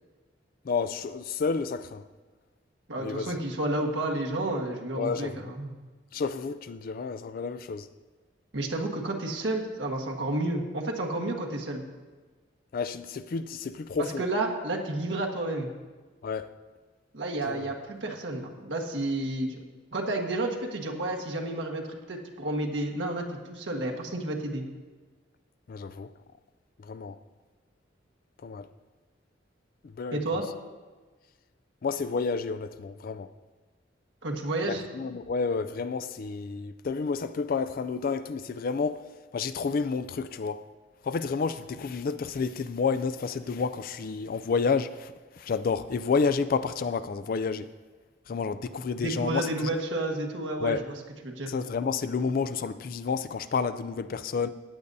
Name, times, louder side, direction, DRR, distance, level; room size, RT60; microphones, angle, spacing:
voice 1, 0.6-2.0 3.0-3.3 5.0-5.3 6.1-7.9 12.7-14.3 16.2-16.5 17.5-17.7 25.7-26.1 26.8-27.2 28.4-28.7 29.8-30.4 31.8-33.3 34.7-40.7 41.0-47.7 48.3-49.7 50.6-50.9 51.5-54.5, left 5 dB, 50° left, 0.4 m, -30 dB
voice 2, 2.9-5.7 8.5-11.8 14.2-15.7 17.1-19.6 19.9-24.6 30.1-30.4 34.2-34.8 49.0-50.9 51.2-51.5, right 2 dB, 80° right, 1.5 m, -31 dB
15.0 x 9.7 x 2.7 m
head